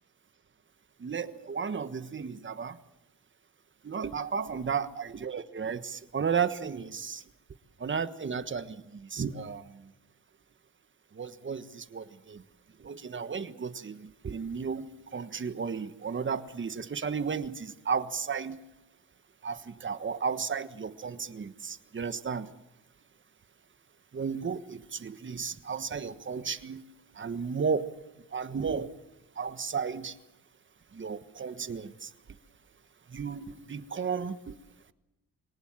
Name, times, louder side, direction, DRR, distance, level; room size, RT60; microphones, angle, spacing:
voice 1, 1.0-2.8 3.8-7.2 7.8-9.9 11.1-12.4 12.8-18.6 19.4-22.5 24.1-27.9 28.3-28.9 29.4-30.1 30.9-32.1 33.1-34.5, right 6 dB, 35° right, 12 dB, 1.4 m, -34 dB
24.5 x 18.5 x 8.9 m, 0.96 s
cardioid pair, 100°, 33 cm